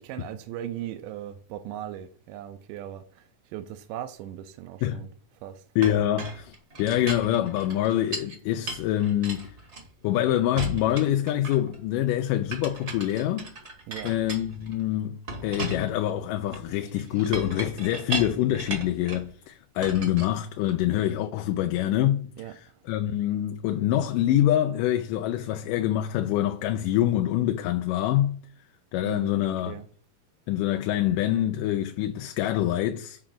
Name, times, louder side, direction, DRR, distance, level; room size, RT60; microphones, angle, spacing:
voice 1, 0.0-5.1 5.4-5.6 13.9-14.1 22.4-22.6 29.0-29.8, right 11 dB, 85° right, 2.2 m, -38 dB
voice 2, 5.8-9.5 10.0-13.5 14.0-28.4 28.9-29.8 30.5-33.2, left 12 dB, 90° left, 2.2 m, -25 dB
Chink clink, 5.8-8.4 8.7-10.2 10.6-11.8 12.5-14.8 15.3-19.3 19.8-21.0, right 2 dB, 45° right, 0.8 m, -37 dB
7.3 x 4.9 x 5.9 m
omnidirectional pair, 3.7 m